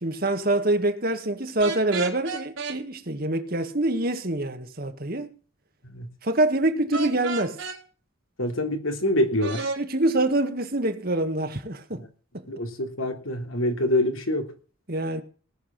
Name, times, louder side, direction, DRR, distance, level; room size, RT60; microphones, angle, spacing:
voice 1, 0.0-5.3 6.2-7.6 9.8-12.0 12.3-12.4 14.9-15.2, right 2 dB, 45° right, 1.8 m, -25 dB
sound 1, 1.6-2.8 6.9-7.8 9.4-9.8, right 3 dB, 65° right, 3.5 m, -31 dB
voice 2, 8.4-9.7 12.5-14.5, left 1 dB, 75° left, 3.3 m, -25 dB
18.5 x 7.5 x 7.6 m
head